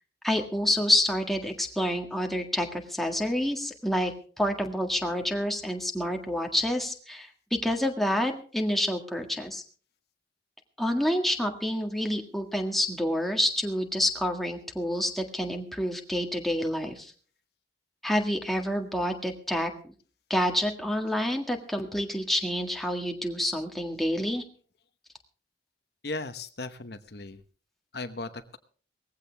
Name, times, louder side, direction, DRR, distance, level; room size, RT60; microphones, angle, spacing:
voice 1, 0.2-4.1 4.4-9.6 10.8-17.1 18.0-19.9 20.3-24.4, left 1 dB, ahead, 2 dB, 1.7 m, -28 dB
voice 2, 26.0-27.4 27.9-28.6, left 2 dB, 60° left, 9 dB, 1.0 m, -37 dB
19.0 x 15.5 x 3.4 m, 0.41 s
head